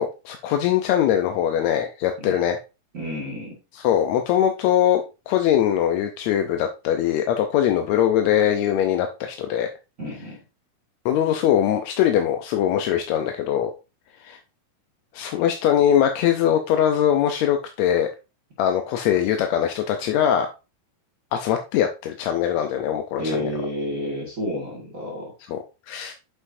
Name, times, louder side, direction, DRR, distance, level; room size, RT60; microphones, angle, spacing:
voice 1, 0.0-2.6 3.7-9.7 11.0-13.7 14.2-14.4 15.1-18.1 18.6-20.5 21.3-23.5 25.5-25.6 25.9-26.1, left 10 dB, 75° left, 5 dB, 1.7 m, -22 dB
voice 2, 2.9-3.5 10.0-10.4 23.2-25.3, equal, 30° right, -3 dB, 1.6 m, -30 dB
8.0 x 5.6 x 2.6 m, 0.28 s
omnidirectional pair, 3.8 m